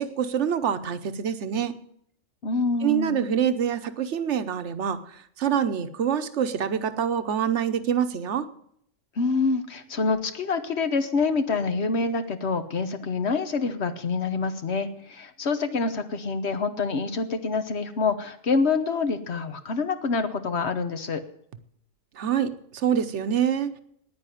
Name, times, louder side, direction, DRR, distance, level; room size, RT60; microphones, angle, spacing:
voice 1, 0.0-1.7 2.8-5.0 5.4-8.5 22.2-23.7, right 8 dB, 65° right, 11 dB, 1.2 m, -26 dB
voice 2, 2.4-3.3 9.2-21.2, left 4 dB, 60° left, 9 dB, 1.3 m, -26 dB
9.8 x 9.7 x 9.2 m, 0.70 s
omnidirectional pair, 1.3 m